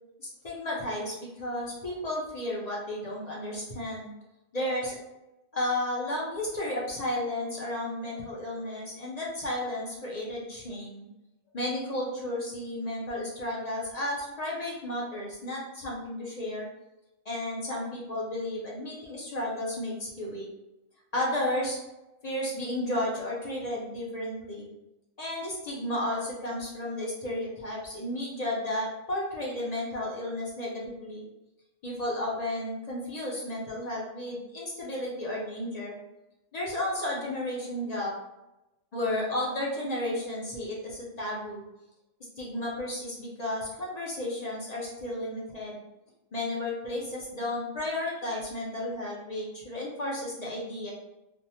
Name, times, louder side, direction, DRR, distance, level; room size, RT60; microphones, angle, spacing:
voice 1, 0.2-4.1 4.5-5.0 5.5-11.1 11.5-16.7 17.2-20.5 21.1-21.8 22.2-24.7 25.2-31.2 31.8-35.9 36.5-38.1 38.9-41.6 42.4-45.8 46.3-50.9, left 1 dB, 45° left, -4 dB, 0.6 m, -33 dB
3.4 x 2.0 x 2.8 m, 0.95 s
omnidirectional pair, 1.4 m